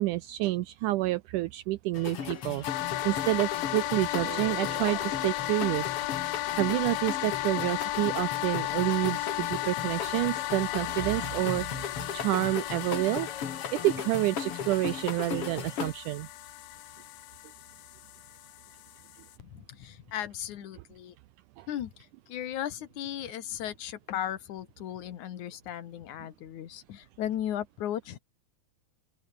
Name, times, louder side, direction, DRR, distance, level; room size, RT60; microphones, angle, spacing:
voice 1, 0.0-2.6 3.0-5.9 6.6-13.3 13.7-16.3 21.6-21.7, right 18 dB, 80° right, 1.9 m, -29 dB
sound 1, 1.9-15.9, left 7 dB, 45° left, 2.8 m, -37 dB
sound 2, 2.6-19.4, left 17 dB, 85° left, 2.6 m, -35 dB
sound 3, 4.2-6.5, right 7 dB, 55° right, 3.5 m, -46 dB
voice 2, 19.4-21.2 21.7-28.2, left 11 dB, 60° left, 2.8 m, -36 dB
open air
omnidirectional pair, 4.1 m